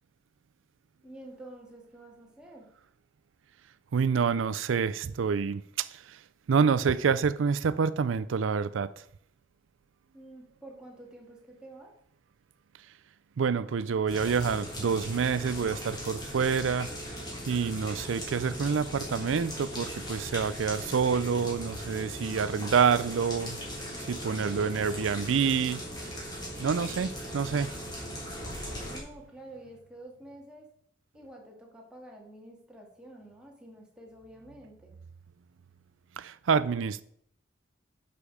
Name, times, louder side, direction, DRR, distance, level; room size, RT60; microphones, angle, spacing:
voice 1, 1.0-2.7 10.1-11.9 28.9-30.7 31.1-35.0, right 1 dB, 5° right, 2.2 m, -49 dB
voice 2, 3.9-9.0 12.8-12.9 13.4-16.9 17.5-25.8 26.6-27.7 36.2-37.0, right 6 dB, 85° right, 0.4 m, -27 dB
sound 1, 14.1-29.0, equal, 20° left, 3.5 m, -39 dB
10.5 x 6.8 x 4.9 m
head